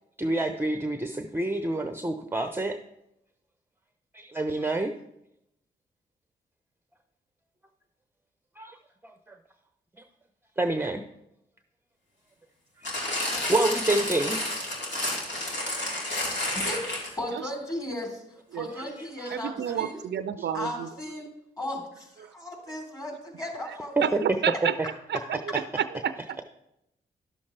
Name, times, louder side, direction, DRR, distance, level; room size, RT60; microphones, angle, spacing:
voice 1, 0.2-2.8 4.1-4.9 8.6-8.8 9.0-9.3 10.6-11.0 12.8-12.9 13.5-14.4 19.2-19.4 20.4-20.5 24.0-24.2, right 2 dB, 10° right, 7 dB, 0.7 m, -27 dB
sound 1, 12.8-17.3 18.0-18.1, left 1 dB, 65° left, 2.4 m, -30 dB
voice 2, 16.5-20.0 20.5-21.3 21.6-24.2, left 1 dB, 20° left, 1 dB, 3.3 m, -36 dB
voice 3, 19.3-20.9 24.0-24.8 25.1-26.4, right 9 dB, 65° right, 12 dB, 0.5 m, -30 dB
11.0 x 7.1 x 3.3 m, 0.82 s
supercardioid pair, 45°, 20 cm